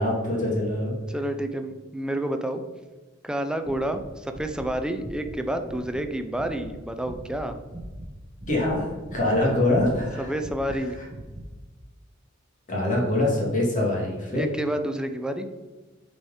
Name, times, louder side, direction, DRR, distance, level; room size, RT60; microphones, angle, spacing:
voice 1, 0.0-1.0 8.5-10.3 12.7-14.5, left 1 dB, 40° left, -3 dB, 2.1 m, -24 dB
voice 2, 1.1-2.6 3.2-7.6 10.2-11.0 14.3-15.5, right 1 dB, 5° right, 7 dB, 0.5 m, -29 dB
sound 1, 3.6-6.1 6.4-6.7 7.0-8.1 8.4-9.5 9.7-11.5, right 1 dB, 20° right, 0.9 m, -40 dB
7.8 x 4.4 x 4.8 m, 1.2 s
head